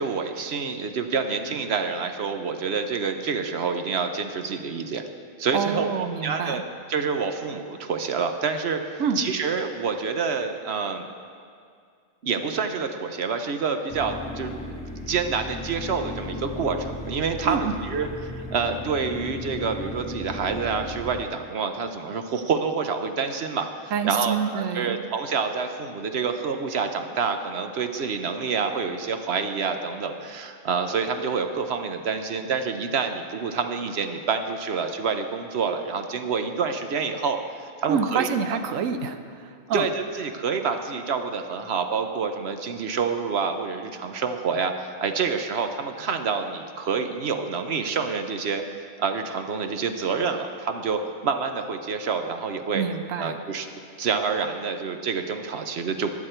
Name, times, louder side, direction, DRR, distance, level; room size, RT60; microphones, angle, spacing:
voice 1, 0.0-5.0 5.4-6.6 6.9-11.1 12.2-14.5 15.1-23.7 24.0-38.9 39.7-48.6 49.0-52.8 53.2-53.7 54.0-56.1, right 5 dB, 60° right, 7 dB, 0.9 m, -27 dB
voice 2, 5.5-6.6 9.0-9.2 17.4-17.7 23.9-25.0 37.9-39.9 52.7-53.4, right 7 dB, 80° right, 9 dB, 1.1 m, -27 dB
sound 1, 13.9-21.2, left 2 dB, 5° left, 0.5 m, -36 dB
14.5 x 9.7 x 4.4 m, 2.2 s
omnidirectional pair, 1.3 m